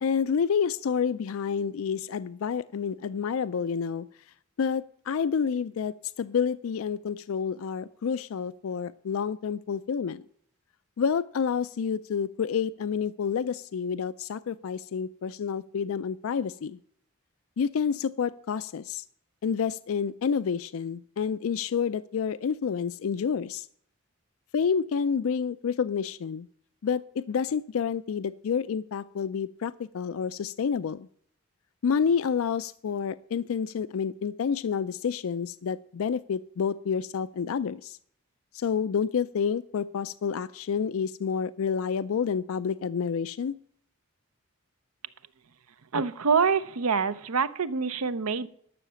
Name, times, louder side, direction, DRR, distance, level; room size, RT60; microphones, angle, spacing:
voice 1, 0.0-4.1 4.6-10.2 11.0-16.8 17.6-19.0 19.4-23.7 24.5-26.5 26.8-31.1 31.8-38.0 38.5-43.5, left 6 dB, 70° left, 14 dB, 0.4 m, -29 dB
voice 2, 45.9-48.5, right 5 dB, 80° right, 14 dB, 0.7 m, -26 dB
12.0 x 6.5 x 6.9 m, 0.65 s
head